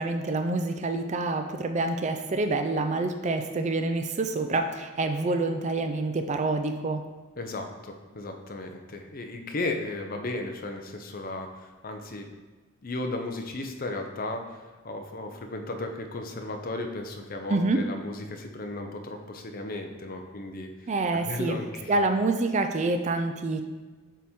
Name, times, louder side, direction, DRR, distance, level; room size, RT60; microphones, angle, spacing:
voice 1, 0.0-7.0 17.5-17.8 20.9-21.6 21.9-23.6, right 2 dB, 35° right, 6 dB, 0.4 m, -27 dB
voice 2, 7.4-12.3 12.8-22.0, left 2 dB, 45° left, 4 dB, 0.6 m, -35 dB
7.3 x 3.7 x 4.3 m, 1.3 s
head